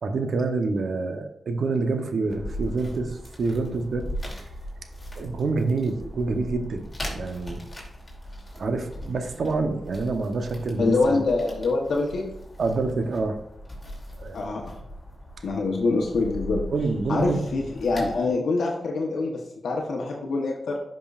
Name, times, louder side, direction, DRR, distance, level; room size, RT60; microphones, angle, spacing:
voice 1, 0.0-4.1 5.2-7.6 8.6-11.2 12.6-13.4 14.2-14.4 16.7-17.4, right 3 dB, 75° right, 7 dB, 0.8 m, -27 dB
sound 1, 2.3-18.2, equal, 20° left, 2.7 m, -39 dB
voice 2, 10.8-12.2 14.3-14.7 15.4-16.6 17.1-20.8, left 3 dB, 85° left, 0 dB, 0.9 m, -25 dB
10.5 x 5.3 x 2.4 m, 0.85 s
cardioid pair, 70°, 0 cm